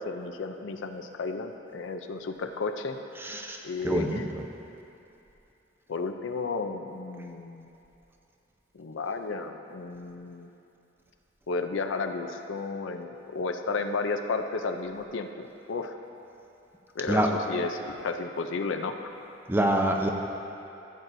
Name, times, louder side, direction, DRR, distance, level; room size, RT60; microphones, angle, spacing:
voice 1, 0.0-3.0 3.6-4.3 5.9-7.7 8.7-10.5 11.5-16.0 16.9-19.0, left 4 dB, 70° left, 5 dB, 0.5 m, -33 dB
voice 2, 3.3-3.6 3.8-4.2 17.1-17.3 19.5-20.1, right 1 dB, 10° right, 2 dB, 0.6 m, -25 dB
14.5 x 7.7 x 2.7 m, 2.8 s
head